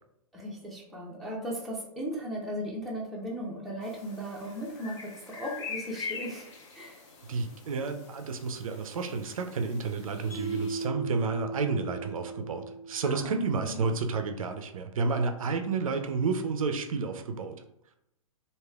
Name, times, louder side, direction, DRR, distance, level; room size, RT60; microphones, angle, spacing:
voice 1, 0.3-6.5 6.7-7.0 13.0-13.3 13.6-13.9, equal, ahead, -4 dB, 0.6 m, -37 dB
sound 1, 3.8-10.9, left 5 dB, 50° left, 0.8 m, -44 dB
voice 2, 7.3-17.6, right 4 dB, 65° right, 7 dB, 0.4 m, -31 dB
Mallet percussion, 10.3-13.6, right 3 dB, 85° left, 1.1 m, -37 dB
3.0 x 2.7 x 2.3 m, 0.81 s
figure-of-eight pair, 115°, 19 cm